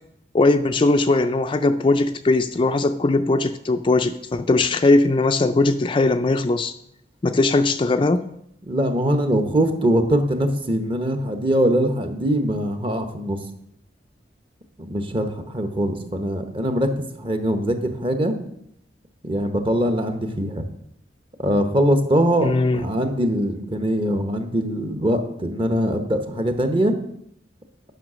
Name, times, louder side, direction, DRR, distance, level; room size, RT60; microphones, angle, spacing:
voice 1, 0.3-6.7 7.2-8.2 22.4-22.8, left 2 dB, 30° left, 9 dB, 0.4 m, -19 dB
voice 2, 8.7-13.4 14.8-16.9 17.1-18.3 19.2-20.7 21.4-26.9, equal, 30° right, 7 dB, 1.0 m, -22 dB
9.2 x 5.6 x 6.2 m, 0.74 s
head